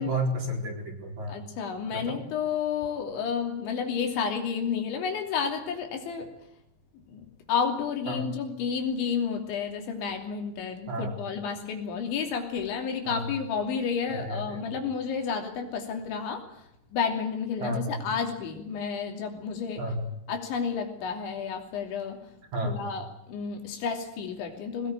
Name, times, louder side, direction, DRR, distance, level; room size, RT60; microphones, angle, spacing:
voice 1, 0.0-1.4 1.9-2.2 8.1-8.3 10.9-11.2 13.1-13.3 14.1-14.8 17.6-18.0 19.8-20.1 22.5-22.8, right 1 dB, 40° right, 2 dB, 5.1 m, -32 dB
voice 2, 1.3-6.3 7.1-19.8 20.3-22.3 22.6-24.9, left 6 dB, 75° left, 4 dB, 5.3 m, -31 dB
22.0 x 20.0 x 9.1 m, 0.78 s
omnidirectional pair, 5.4 m